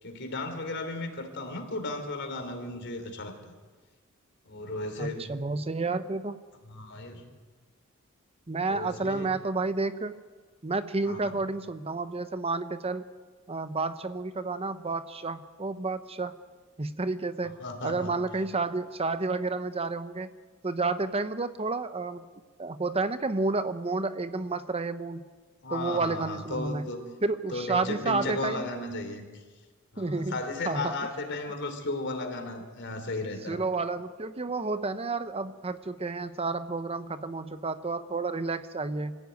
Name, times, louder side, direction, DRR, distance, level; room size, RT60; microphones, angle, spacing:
voice 1, 0.0-3.5 4.4-5.3 6.6-7.3 8.7-9.3 11.0-11.4 17.4-18.1 25.6-27.1 27.5-29.4 29.9-33.6, left 2 dB, 55° left, 6 dB, 3.4 m, -35 dB
voice 2, 5.0-6.4 8.5-10.2 10.6-13.1 13.5-16.3 16.8-17.6 17.8-20.3 20.6-22.3 22.6-25.2 25.7-26.9 27.2-28.7 30.0-30.4 30.7-30.9 33.5-39.2, right 3 dB, 30° right, 11 dB, 0.8 m, -30 dB
25.5 x 15.5 x 9.3 m, 1.4 s
head